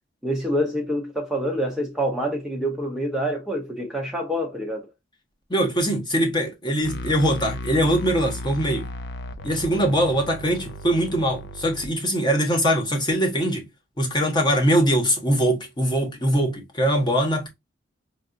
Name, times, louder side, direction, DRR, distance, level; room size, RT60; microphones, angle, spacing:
voice 1, 0.2-4.9, equal, 5° right, 0.7 m, -26 dB
voice 2, 5.5-8.9 9.4-13.6 14.0-17.5, equal, 25° left, 1.1 m, -22 dB
sound 1, 6.8-11.9, left 1 dB, 60° left, 0.5 m, -35 dB
4.6 x 2.4 x 2.5 m
head